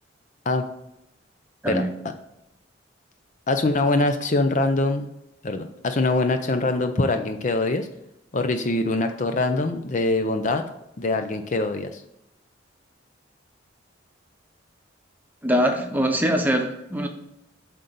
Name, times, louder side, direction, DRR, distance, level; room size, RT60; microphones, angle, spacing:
voice 1, 1.7-2.1 3.5-5.1 5.4-7.9 8.3-10.6 11.0-12.0, left 2 dB, 40° left, 7 dB, 0.5 m, -23 dB
voice 2, 15.4-17.1, equal, 10° right, 4 dB, 0.8 m, -22 dB
8.0 x 3.9 x 6.8 m, 0.85 s
head